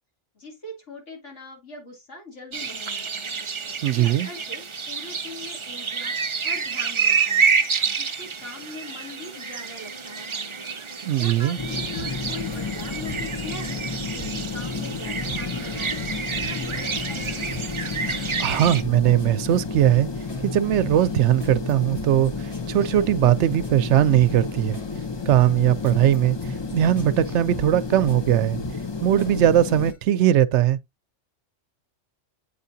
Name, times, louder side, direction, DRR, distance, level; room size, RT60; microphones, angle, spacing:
voice 1, 0.3-3.3 3.7-6.1 6.4-7.5 7.8-10.7 11.2-13.8 14.1-16.1 16.4-17.5, left 2 dB, 75° left, 3.3 m, -41 dB
sound 1, 2.5-18.8, right 5 dB, 40° right, 0.4 m, -28 dB
voice 2, 3.8-4.3 11.0-11.6 18.4-20.1 20.4-24.8 25.3-26.4 26.7-28.6 29.0-30.8, right 12 dB, 70° right, 0.8 m, -20 dB
sound 2, 11.6-29.9, left 4 dB, 25° left, 0.7 m, -31 dB
sound 3, 12.0-14.9 15.3-16.0 16.4-19.4 19.7-20.5 20.8-23.8 24.2-24.9 25.3-28.2 28.6-29.4 29.7-30.0, right 4 dB, 45° left, 3.8 m, -46 dB
8.4 x 4.6 x 2.7 m
omnidirectional pair, 1.3 m